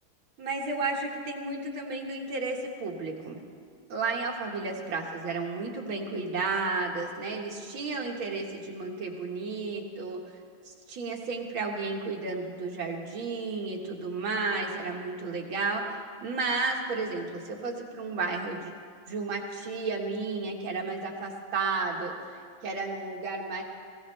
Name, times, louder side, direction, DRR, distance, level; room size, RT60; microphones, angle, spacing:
voice 1, 0.4-3.4 3.9-10.2 10.7-18.7 19.1-23.6, right 3 dB, 85° right, 0 dB, 2.4 m, -32 dB
19.5 x 17.5 x 3.3 m, 2.2 s
omnidirectional pair, 2.2 m